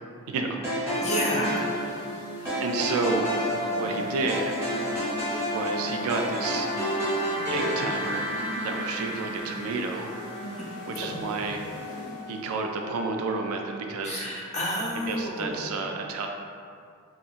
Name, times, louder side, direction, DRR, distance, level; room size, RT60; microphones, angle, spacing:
voice 1, 0.3-1.0 2.6-3.3 3.8-4.5 5.5-6.7 7.5-8.3 8.6-10.1 10.9-11.6 12.3-14.3 14.9-16.3, right 3 dB, 70° right, 4 dB, 0.3 m, -30 dB
sound 1, 0.6-10.9, equal, 10° right, 0.8 m, -30 dB
sound 2, 0.9-12.5, equal, 55° left, 0.8 m, -40 dB
voice 2, 1.0-1.6 14.0-15.7, equal, 30° left, -5 dB, 0.5 m, -30 dB
Wind instrument woodwind instrument, 9.9-13.8, left 3 dB, 85° left, 0.9 m, -44 dB
2.9 x 2.7 x 2.4 m, 2.2 s
head